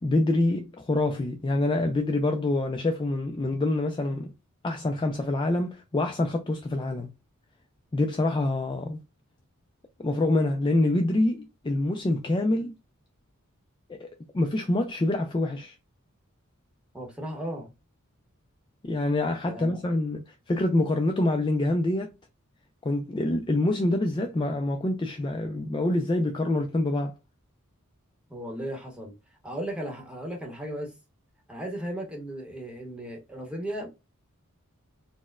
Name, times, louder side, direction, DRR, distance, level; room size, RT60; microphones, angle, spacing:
voice 1, 0.0-4.3 4.6-7.1 7.9-9.0 10.0-12.7 13.9-14.1 14.3-15.8 18.8-22.1 22.8-27.1, left 2 dB, 20° left, 0.3 m, -26 dB
voice 2, 16.9-17.7 19.5-19.8 28.3-29.1 29.4-30.9 31.5-34.0, right 1 dB, 5° right, 0.9 m, -36 dB
4.2 x 2.1 x 2.2 m
head